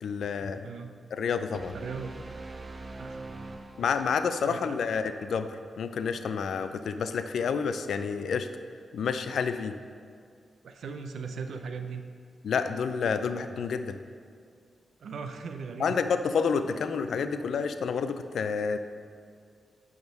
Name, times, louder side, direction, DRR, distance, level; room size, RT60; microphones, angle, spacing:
voice 1, 0.0-0.7 1.1-1.8 3.8-8.5 8.9-9.8 12.4-14.0 15.8-18.8, left 6 dB, 85° left, 10 dB, 0.4 m, -29 dB
voice 2, 0.6-0.9 1.7-2.1 3.0-3.2 4.4-4.8 10.6-12.0 15.0-16.0, right 5 dB, 85° right, 6 dB, 0.5 m, -38 dB
sound 1, 1.5-4.5, right 2 dB, 40° right, 0.6 m, -43 dB
10.5 x 3.6 x 5.4 m, 2.2 s
cardioid pair, 65°, 0 cm